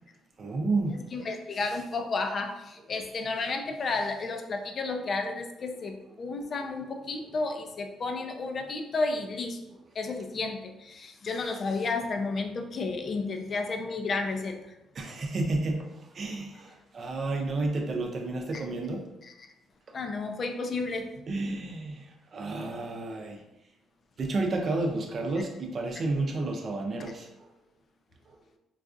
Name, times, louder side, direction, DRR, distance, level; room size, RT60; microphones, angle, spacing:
voice 1, 0.4-1.1 14.9-19.0 21.3-23.4 24.2-27.5 28.3-28.4, right 2 dB, 50° right, 2 dB, 0.6 m, -31 dB
voice 2, 0.9-9.6 9.9-14.7 18.5-18.6 19.2-19.3 19.9-21.2 27.0-27.1, left 3 dB, 50° left, 5 dB, 0.4 m, -32 dB
3.9 x 2.3 x 2.5 m, 0.89 s
cardioid pair, 90°, 0 cm